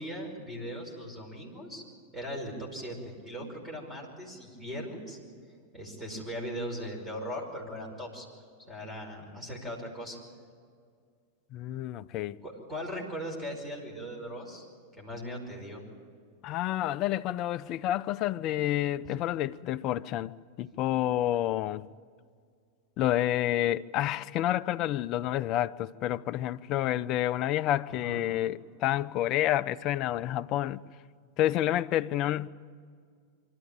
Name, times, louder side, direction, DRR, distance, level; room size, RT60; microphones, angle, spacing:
voice 1, 0.0-1.8 2.1-5.2 5.7-8.3 8.7-10.2 12.4-14.7 14.9-15.8 28.0-28.2, equal, 10° right, 5.3 m, -39 dB
voice 2, 11.5-12.4 16.4-21.9 23.0-30.8 31.4-32.5, left 13 dB, 40° left, 0.4 m, -29 dB
24.5 x 13.0 x 9.1 m
figure-of-eight pair, 90°, 0 cm